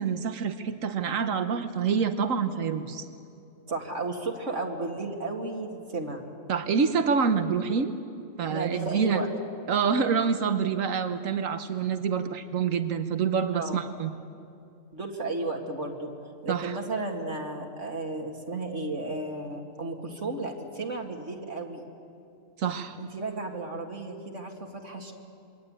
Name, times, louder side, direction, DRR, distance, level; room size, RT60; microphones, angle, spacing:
voice 1, 0.0-3.0 6.5-7.9 8.4-9.2 9.7-14.1 16.5-16.8 22.6-23.0, right 6 dB, 85° right, 9 dB, 1.5 m, -27 dB
voice 2, 3.7-6.2 8.5-9.3 13.5-13.8 14.9-16.1 16.4-21.8 23.0-25.1, right 3 dB, 65° right, 1 dB, 2.6 m, -33 dB
27.5 x 23.0 x 8.9 m, 2.6 s
omnidirectional pair, 1.3 m